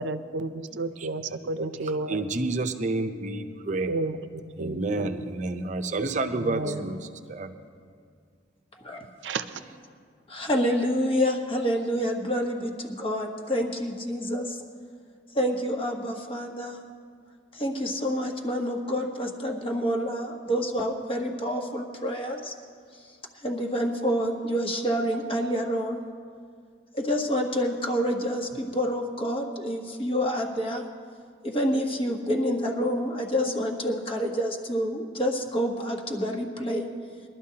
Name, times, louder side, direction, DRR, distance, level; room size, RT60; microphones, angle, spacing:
voice 1, 0.0-2.3 3.9-5.1 6.3-6.8 9.2-9.6, right 3 dB, 85° right, 11 dB, 0.5 m, -32 dB
voice 2, 0.7-1.1 1.4-1.7 2.1-4.0 4.6-7.0 7.3-7.5, right 2 dB, 40° right, 7 dB, 0.6 m, -30 dB
voice 3, 6.4-6.9 8.8-9.1 10.3-14.6 15.3-16.8 17.5-22.5 22.9-23.0 23.4-26.0 26.9-30.8 31.4-36.9, equal, 30° left, 2 dB, 1.3 m, -28 dB
22.0 x 12.0 x 2.8 m, 2.1 s
head